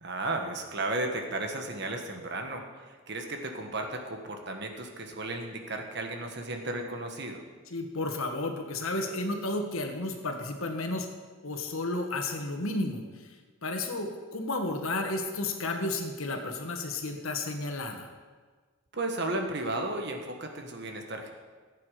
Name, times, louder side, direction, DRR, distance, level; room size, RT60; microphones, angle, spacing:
voice 1, 0.0-7.4 18.9-21.3, right 2 dB, 55° right, 4 dB, 1.5 m, -34 dB
voice 2, 7.7-11.1 11.4-13.4 13.6-18.1, left 2 dB, 80° left, 4 dB, 1.5 m, -32 dB
15.5 x 8.6 x 5.0 m, 1.4 s
head